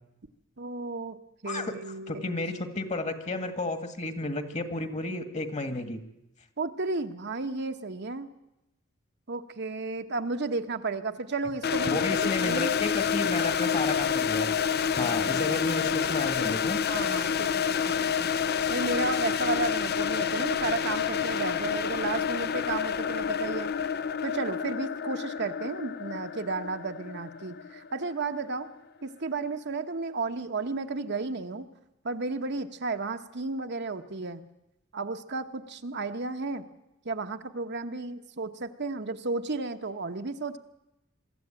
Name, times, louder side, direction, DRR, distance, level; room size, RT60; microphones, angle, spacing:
voice 1, 0.6-1.2 1.4-2.3 6.6-8.3 9.3-12.7 15.0-15.6 16.9-18.3 18.7-23.7 24.2-28.7 29.0-31.7 32.0-34.4 34.9-36.6 37.0-40.6, right 3 dB, 60° right, 7 dB, 1.1 m, -33 dB
voice 2, 2.1-6.0 11.9-14.5 14.9-16.8, left 2 dB, 35° left, 9 dB, 1.9 m, -32 dB
sound 1, 11.6-28.5, left 7 dB, 50° left, 0.7 m, -28 dB
23.5 x 13.5 x 9.0 m, 0.90 s
head